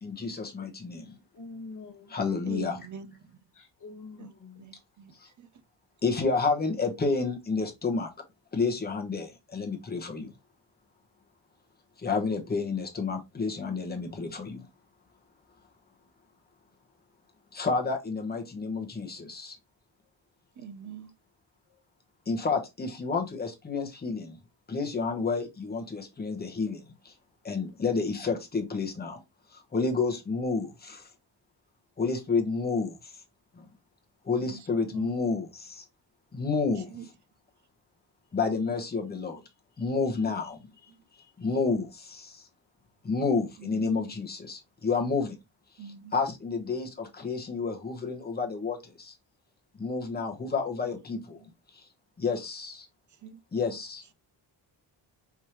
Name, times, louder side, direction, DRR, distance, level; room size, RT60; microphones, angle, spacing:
voice 1, 0.0-1.2 2.1-2.8 5.2-5.3 6.0-8.1 8.5-10.3 12.0-14.7 17.5-19.6 22.3-24.4 24.7-27.1 27.4-29.2 29.5-31.0 32.0-33.1 33.6-33.7 34.2-35.8 36.3-36.9 38.3-39.4 39.8-40.7 41.4-42.4 43.0-45.4 46.1-49.1 49.8-51.4 51.7-51.9 52.2-52.9 53.5-54.0, left 4 dB, 20° left, 0.9 m, -30 dB
voice 2, 1.3-2.3 3.5-4.7 21.7-21.8, left 3 dB, 45° left, 1.2 m, -46 dB
voice 3, 2.5-3.2 4.2-4.3 4.6-5.5 20.6-21.1 34.4-35.1 36.8-37.1 43.6-44.1 45.8-46.1 51.3-51.5 53.2-53.4, right 7 dB, 45° right, 0.5 m, -44 dB
4.7 x 3.5 x 2.9 m
wide cardioid pair, 165°, 44 cm